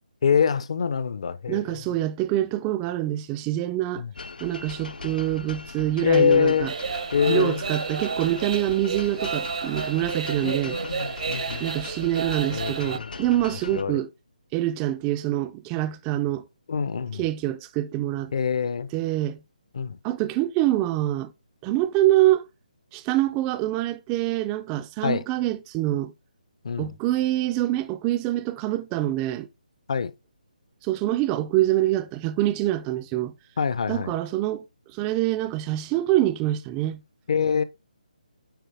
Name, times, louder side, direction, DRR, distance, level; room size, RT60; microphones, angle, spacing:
voice 1, 0.2-1.8 4.0-4.1 6.0-6.7 7.1-7.6 10.4-11.6 12.5-13.1 13.7-14.0 16.7-17.2 18.3-18.9 19.7-20.0 25.0-25.2 26.6-26.9 29.9-30.1 33.6-34.1 37.3-37.6, left 6 dB, 45° left, 0.6 m, -24 dB
voice 2, 1.5-4.0 4.4-6.7 7.3-10.8 11.6-14.1 14.5-16.5 17.2-18.3 18.9-19.4 20.0-21.3 21.6-22.5 22.9-26.1 26.8-29.5 30.8-33.3 33.9-34.6 34.9-37.0, right 14 dB, 10° right, 0.3 m, -25 dB
sound 1, 4.1-13.8, left 4 dB, 80° left, 0.9 m, -38 dB
sound 2, 6.7-13.0, right 6 dB, 55° right, 0.7 m, -32 dB
9.2 x 4.2 x 3.3 m
hypercardioid pair, 170°, 5 cm